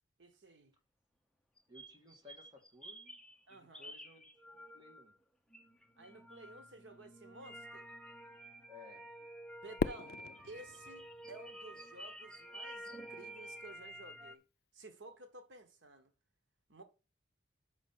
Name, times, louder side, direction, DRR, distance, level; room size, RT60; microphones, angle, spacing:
voice 1, 0.2-0.7 3.5-3.9 6.0-7.8 9.6-14.4 14.7-16.1 16.7-16.8, right 2 dB, 85° right, 1.2 m, -54 dB
sound 1, 1.6-5.2 5.5-14.4, right 1 dB, 5° left, 0.5 m, -51 dB
voice 2, 1.7-3.2 3.5-5.2 8.7-9.1 9.6-9.7 10.1-10.3, left 4 dB, 25° right, 1.7 m, -59 dB
Fireworks, 9.8-12.1, left 4 dB, 55° left, 0.4 m, -40 dB
6.3 x 5.1 x 5.7 m
head